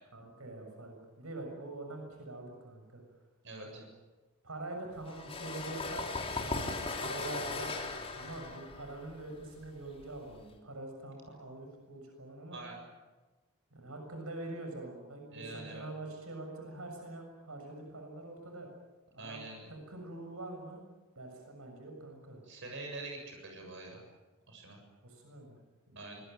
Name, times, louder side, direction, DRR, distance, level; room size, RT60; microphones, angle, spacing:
voice 1, 0.1-3.0 3.6-3.8 4.4-6.3 6.9-12.6 13.7-18.7 19.1-19.4 19.7-20.8 21.1-22.4 25.0-25.6 25.9-26.2, right 2 dB, 80° right, 3 dB, 6.9 m, -44 dB
voice 2, 3.4-3.8 8.2-8.4 12.5-12.8 15.3-15.8 19.2-19.7 22.5-24.0 24.5-24.8 26.0-26.2, right 2 dB, 60° right, 2 dB, 7.3 m, -45 dB
sound 1, 5.0-10.5, left 3 dB, 30° left, 3.5 m, -38 dB
25.0 x 21.5 x 9.2 m, 1.2 s
head